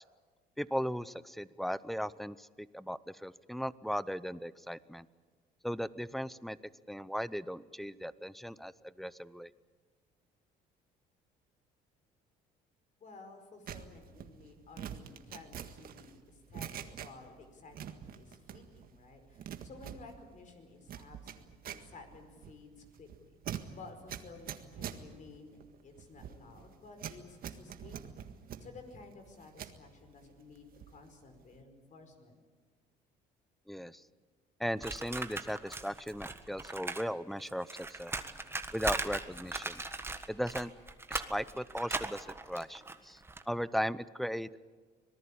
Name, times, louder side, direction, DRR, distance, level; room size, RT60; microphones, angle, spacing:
voice 1, 0.6-5.1 5.6-6.6 6.9-9.5 33.7-34.0 34.6-38.1 38.7-39.8 40.3-40.7 41.1-43.2 43.5-44.6, equal, ahead, 18 dB, 0.7 m, -37 dB
voice 2, 13.0-28.1 28.6-32.4, left 3 dB, 45° left, 6 dB, 5.0 m, -54 dB
sound 1, 13.7-17.4 17.7-18.9 19.2-29.8 30.2-31.1 31.3-31.6, right 9 dB, 60° right, 1.7 m, -45 dB
sound 2, 34.8-37.1 37.3-43.4, right 3 dB, 15° right, 1.5 m, -39 dB
25.5 x 19.0 x 8.7 m, 1.5 s
cardioid pair, 110°, 17 cm